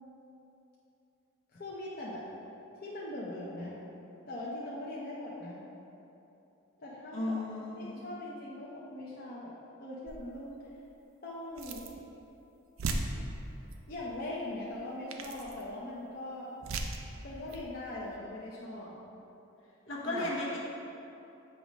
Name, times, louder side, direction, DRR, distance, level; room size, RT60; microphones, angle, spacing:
voice 1, 1.5-2.2 2.8-3.7 4.3-5.6 6.8-7.4 7.7-9.5 9.8-10.6 11.2-11.9 13.9-16.5 17.2-18.9 20.0-20.3, left 1 dB, 45° left, -7 dB, 0.7 m, -41 dB
voice 2, 7.1-8.0 19.9-20.6, left 1 dB, 70° left, -3 dB, 1.1 m, -35 dB
sound 1, 10.1-10.4 11.5-12.0 12.4-12.5 12.8-13.7 14.7-14.8 15.1-15.7 16.6-17.1 17.5-17.7, right 2 dB, 85° right, 0.5 m, -37 dB
7.7 x 3.1 x 5.2 m, 2.9 s
head